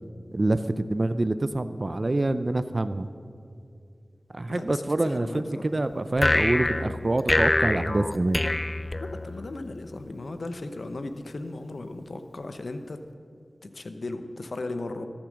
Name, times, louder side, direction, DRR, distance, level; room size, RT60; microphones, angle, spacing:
voice 1, 0.3-3.1 4.3-8.4, right 2 dB, 50° right, 12 dB, 0.5 m, -26 dB
voice 2, 4.5-5.7 9.0-13.0 13.6-15.1, left 2 dB, 75° left, 8 dB, 0.8 m, -36 dB
sound 1, 6.2-9.6, left 2 dB, 40° left, 0.4 m, -25 dB
14.0 x 8.9 x 6.3 m, 2.4 s
cardioid pair, 40°, 0 cm